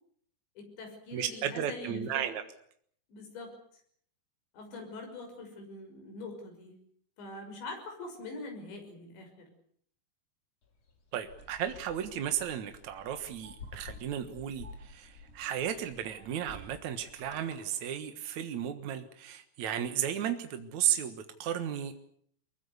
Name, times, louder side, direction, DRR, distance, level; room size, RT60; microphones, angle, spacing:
voice 1, 0.6-2.3 3.1-3.6 4.5-6.8 7.2-9.5, left 2 dB, 70° left, 4 dB, 8.3 m, -44 dB
voice 2, 1.1-2.4 11.1-22.1, right 10 dB, 65° right, 7 dB, 1.9 m, -34 dB
ambiance glitches, 10.6-17.4, left 4 dB, 35° left, 3.9 m, -52 dB
sound 1, 11.4-17.9, right 2 dB, 15° right, 4.5 m, -56 dB
24.5 x 22.0 x 8.2 m, 0.65 s
omnidirectional pair, 5.4 m